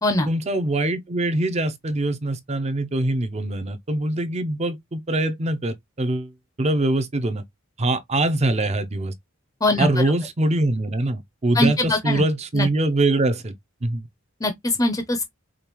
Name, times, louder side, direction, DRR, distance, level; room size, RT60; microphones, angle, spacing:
voice 1, 0.3-6.3 6.6-7.4 7.8-9.1 9.8-13.5 13.8-14.1, right 2 dB, 30° right, 0.6 m, -23 dB
voice 2, 11.5-12.2 12.5-12.7 14.4-15.2, left 2 dB, 15° left, 0.6 m, -22 dB
5.0 x 2.4 x 3.0 m
head